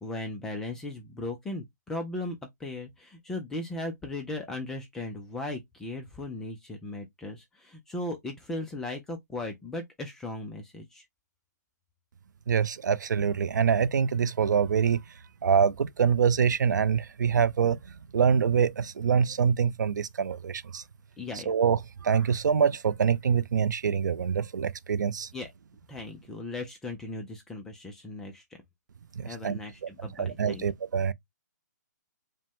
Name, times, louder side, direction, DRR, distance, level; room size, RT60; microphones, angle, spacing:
voice 1, 0.0-11.0 21.2-21.5 25.3-25.5 25.9-28.4 29.3-30.6, left 2 dB, 5° left, 0.3 m, -37 dB
voice 2, 12.5-15.0 15.4-17.8 18.1-20.8 21.5-25.3 29.2-29.9 30.2-31.1, right 7 dB, 75° right, 0.5 m, -25 dB
5.1 x 2.1 x 3.5 m
hypercardioid pair, 165°, 10 cm